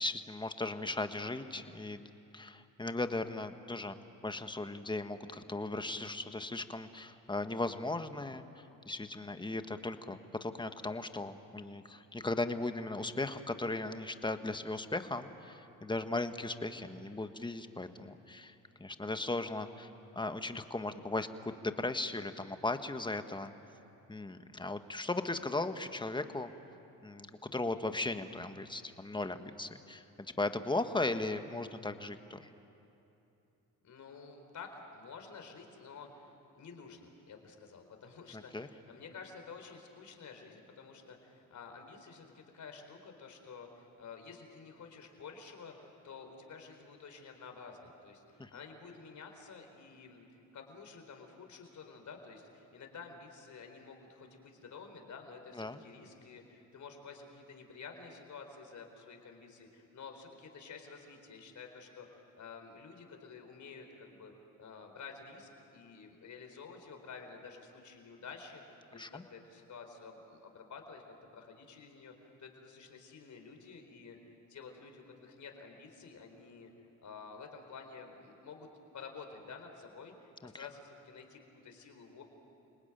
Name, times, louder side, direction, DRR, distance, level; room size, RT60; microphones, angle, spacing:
voice 1, 0.0-4.0 4.2-21.3 21.6-23.5 24.1-26.5 27.0-30.0 30.4-32.5 38.3-38.7 48.4-48.5 55.5-55.8 68.9-69.2 80.4-80.7, left 2 dB, 15° left, 9 dB, 1.4 m, -37 dB
voice 2, 33.8-50.3 50.5-64.3 64.6-72.1 72.4-74.2 74.5-76.7 77.0-78.7 78.9-82.2, left 5 dB, 55° left, 4 dB, 4.2 m, -51 dB
28.5 x 19.5 x 9.2 m, 2.8 s
cardioid pair, 75°, 35 cm